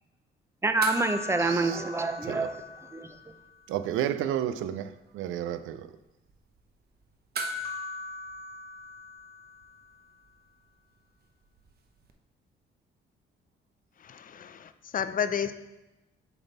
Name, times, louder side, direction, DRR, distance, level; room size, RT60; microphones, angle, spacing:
voice 1, 0.6-2.6 2.9-3.1, right 3 dB, 15° right, 0.5 m, -27 dB
sound 1, 0.8-3.5 3.7-3.8 7.3-9.9 12.1-12.2, equal, 50° right, 0.7 m, -38 dB
voice 2, 1.4-1.8 2.2-2.5 3.7-5.9, right 11 dB, 85° right, 0.4 m, -32 dB
voice 3, 14.0-15.5, left 7 dB, 45° left, 0.5 m, -31 dB
6.7 x 4.1 x 4.1 m
cardioid pair, 90°, 20 cm